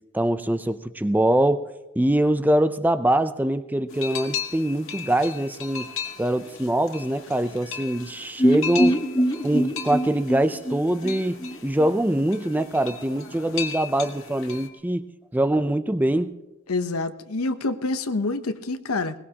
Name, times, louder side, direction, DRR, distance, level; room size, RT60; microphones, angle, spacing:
voice 1, 0.1-1.7 2.0-5.9 6.2-9.0 9.4-15.1 15.3-16.3, right 1 dB, 10° right, 11 dB, 0.5 m, -23 dB
sound 1, 3.9-14.7, left 7 dB, 65° left, 1.6 m, -37 dB
sound 2, 8.4-12.3 12.5-12.6 12.9-13.0, equal, 20° left, 1.3 m, -24 dB
voice 2, 16.7-19.1, left 3 dB, 85° left, 11 dB, 0.8 m, -27 dB
21.5 x 20.0 x 2.9 m, 1.0 s
head